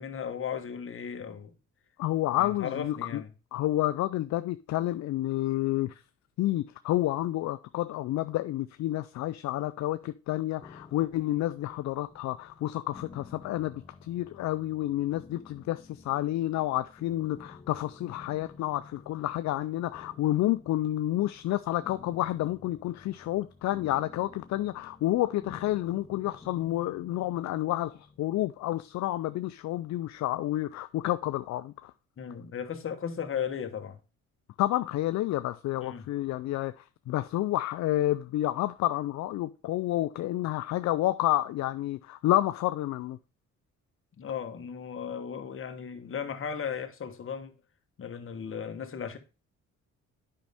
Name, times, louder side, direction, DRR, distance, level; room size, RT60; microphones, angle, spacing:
voice 1, 0.0-1.5 2.4-3.3 32.2-34.0 35.8-36.1 44.2-47.6 48.0-49.2, left 7 dB, 45° left, 1.2 m, -36 dB
voice 2, 2.0-3.2 3.5-6.0 6.4-31.9 34.6-43.2, left 15 dB, 65° left, 0.4 m, -30 dB
sound 1, 10.6-29.6, left 4 dB, 15° left, 0.9 m, -52 dB
8.9 x 5.3 x 3.5 m
cardioid pair, 90°, 30 cm